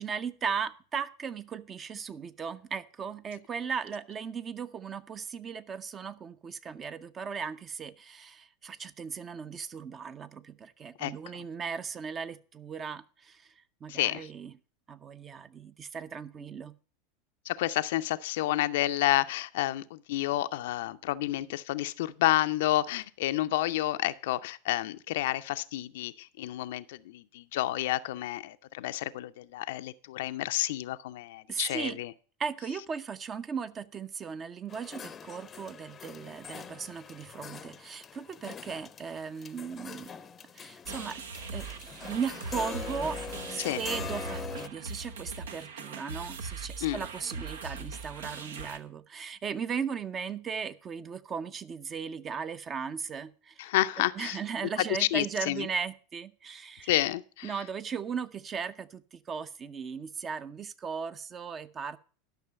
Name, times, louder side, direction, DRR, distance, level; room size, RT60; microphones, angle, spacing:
voice 1, 0.0-14.5 14.9-16.7 31.5-32.0 32.4-40.2 40.5-41.2 41.5-41.7 42.0-43.2 43.5-53.7 54.2-56.9 57.4-62.0, right 6 dB, 30° right, 0.7 m, -37 dB
voice 2, 11.0-11.4 13.9-14.3 17.5-32.1 43.6-43.8 46.8-47.0 53.6-54.4 55.0-55.7 56.9-57.5, left 15 dB, 65° left, 0.5 m, -30 dB
sound 1, 34.7-44.7, left 6 dB, 25° left, 0.6 m, -43 dB
sound 2, 40.8-48.8, right 4 dB, 75° right, 0.9 m, -40 dB
11.5 x 6.1 x 6.7 m
figure-of-eight pair, 85°, 0 cm